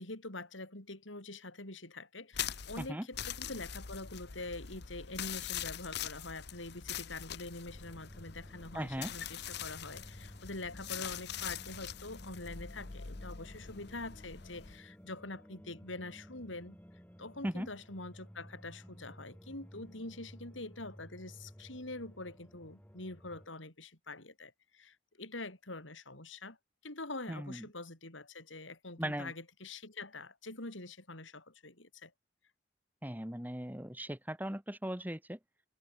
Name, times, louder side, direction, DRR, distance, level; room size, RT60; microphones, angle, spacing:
voice 1, 0.0-16.8 17.2-26.6 26.8-32.1, left 2 dB, 75° left, 5.3 m, -45 dB
sound 1, 2.3-14.8, left 9 dB, 60° left, 1.1 m, -43 dB
voice 2, 2.8-3.1 8.7-9.1 17.4-17.7 27.3-27.6 29.0-29.3 33.0-35.4, equal, 10° right, 3.5 m, -38 dB
sound 2, 7.7-23.5, equal, 10° left, 5.4 m, -55 dB
open air
head